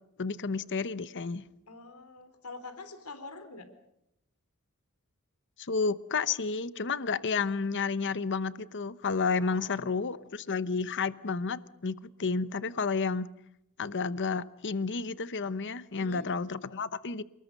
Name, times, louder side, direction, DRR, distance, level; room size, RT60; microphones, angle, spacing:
voice 1, 0.2-1.4 5.6-13.3 13.8-17.2, left 4 dB, 55° left, 16 dB, 0.9 m, -31 dB
voice 2, 1.7-3.6 9.4-10.1 16.0-16.3, left 3 dB, 85° left, 10 dB, 3.7 m, -46 dB
28.5 x 20.0 x 6.6 m, 0.80 s
head